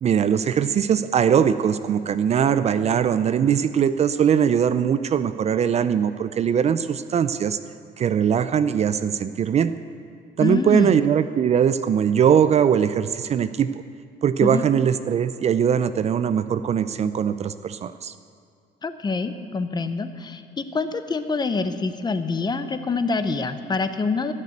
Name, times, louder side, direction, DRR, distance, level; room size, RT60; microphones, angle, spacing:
voice 1, 0.0-7.6 8.0-9.7 10.4-13.7 14.2-18.1, right 8 dB, 40° right, 12 dB, 0.5 m, -21 dB
voice 2, 10.4-11.0 14.4-14.6 18.8-24.3, left 4 dB, 25° left, 10 dB, 0.8 m, -26 dB
16.0 x 6.7 x 8.6 m, 2.3 s
cardioid pair, 110°, 17 cm